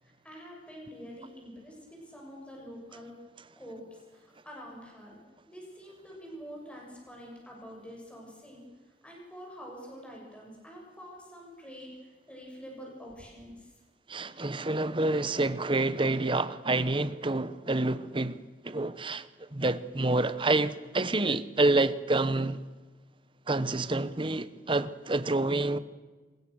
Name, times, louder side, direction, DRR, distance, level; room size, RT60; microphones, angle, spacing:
voice 1, 0.0-3.2 3.6-5.2 5.5-13.7, equal, 5° left, 7.0 m, -46 dB
voice 2, 14.1-18.4 18.6-22.6 23.5-25.8, right 2 dB, 30° right, 1.0 m, -28 dB
25.5 x 21.5 x 6.5 m
head